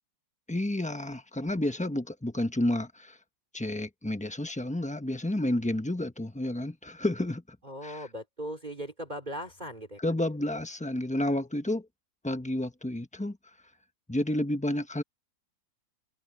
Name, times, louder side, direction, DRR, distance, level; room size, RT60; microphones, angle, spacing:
voice 1, 0.5-3.2 3.5-7.6 7.8-8.1 10.0-11.9 12.2-13.4 14.1-15.0, left 1 dB, 5° left, 0.7 m, -30 dB
voice 2, 7.6-10.0, equal, 20° right, 3.5 m, -38 dB
omnidirectional pair, 2.1 m